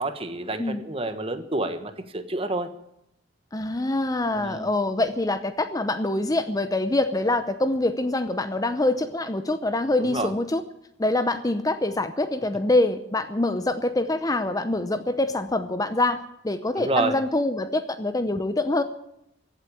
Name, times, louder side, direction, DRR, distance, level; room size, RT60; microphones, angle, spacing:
voice 1, 0.0-2.7 4.3-4.7 10.1-10.3 16.8-17.1, right 2 dB, 30° right, 9 dB, 1.3 m, -28 dB
voice 2, 3.5-10.6 11.0-18.8, left 2 dB, 20° left, 10 dB, 0.7 m, -25 dB
16.0 x 8.2 x 10.0 m, 0.80 s
head